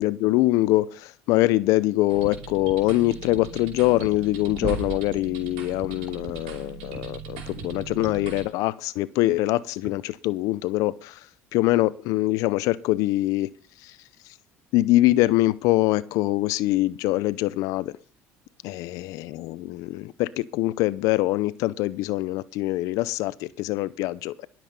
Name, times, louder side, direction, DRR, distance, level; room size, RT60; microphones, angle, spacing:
voice 1, 0.0-11.2 11.5-13.5 13.8-13.9 14.7-18.0 18.6-24.5, left 17 dB, 75° left, 0.7 m, -24 dB
sound 1, 2.1-8.4, right 5 dB, 90° right, 5.1 m, -39 dB
sound 2, 4.2-4.3 4.5-5.2 6.9-7.0 8.8-9.0 9.8-9.9, right 5 dB, 35° right, 4.4 m, -32 dB
20.5 x 7.7 x 5.4 m
supercardioid pair, 95°, 6 cm